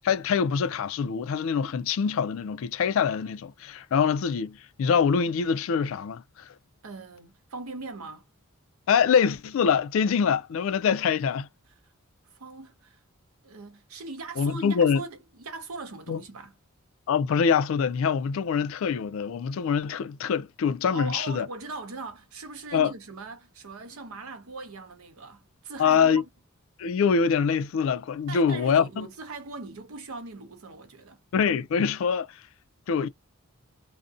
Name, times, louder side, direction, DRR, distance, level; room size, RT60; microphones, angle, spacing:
voice 1, 0.0-6.5 8.9-11.5 14.4-15.0 16.1-16.2 17.1-21.5 22.7-22.9 25.8-26.2 26.8-29.1 31.3-32.3 32.9-33.1, left 6 dB, 65° left, 0.3 m, -24 dB
voice 2, 6.8-8.3 12.3-13.0 13.4-16.5 20.9-26.3 28.3-31.2, right 3 dB, 80° right, 0.8 m, -40 dB
2.5 x 2.1 x 2.5 m
head